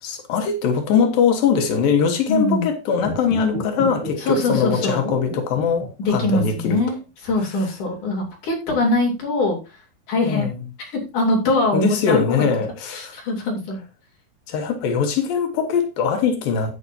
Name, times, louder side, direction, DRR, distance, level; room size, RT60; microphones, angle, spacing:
voice 1, 0.0-6.8 10.2-10.6 11.7-13.2 14.5-16.7, left 6 dB, 85° left, 3.1 m, -21 dB
voice 2, 2.3-2.6 4.2-5.0 6.0-9.6 10.1-10.5 10.8-12.2 12.9-13.8, left 2 dB, 60° left, 4.8 m, -22 dB
sound 1, 2.9-6.3 6.6-6.7, left 2 dB, 35° left, 4.4 m, -31 dB
11.5 x 9.4 x 2.8 m
omnidirectional pair, 4.0 m